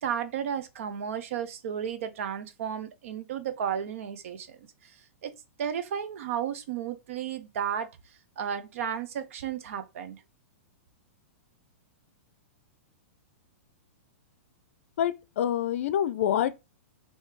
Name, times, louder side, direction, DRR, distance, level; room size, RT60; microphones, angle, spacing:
voice 1, 0.0-7.9 8.4-10.2, right 8 dB, 65° right, 0.6 m, -33 dB
voice 2, 15.0-16.6, left 10 dB, 65° left, 0.4 m, -26 dB
3.1 x 2.7 x 3.3 m
hypercardioid pair, 130°, 8 cm